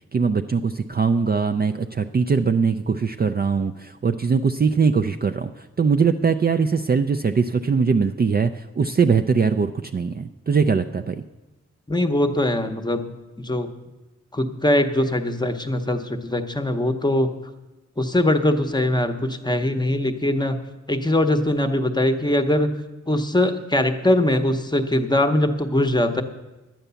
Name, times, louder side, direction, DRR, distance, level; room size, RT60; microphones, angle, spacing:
voice 1, 0.1-11.2, right 5 dB, 35° right, 7 dB, 0.4 m, -21 dB
voice 2, 11.9-13.0 13.4-13.7 14.3-17.3 18.0-20.6 20.9-22.7 23.1-26.2, left 1 dB, 15° left, 7 dB, 0.8 m, -21 dB
11.0 x 9.0 x 6.9 m, 1.1 s
wide cardioid pair, 130°, 29 cm